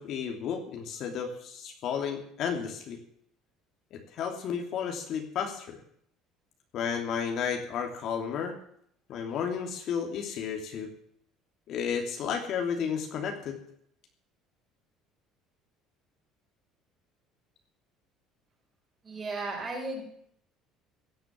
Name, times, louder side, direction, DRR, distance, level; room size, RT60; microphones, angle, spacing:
voice 1, 0.0-3.0 3.9-5.8 6.7-8.6 9.1-10.9 11.7-13.6, left 7 dB, 50° left, 4 dB, 2.9 m, -32 dB
voice 2, 19.0-20.0, right 2 dB, 25° right, -2 dB, 7.1 m, -34 dB
17.0 x 10.0 x 7.5 m, 0.66 s
cardioid pair, 155°, 0 cm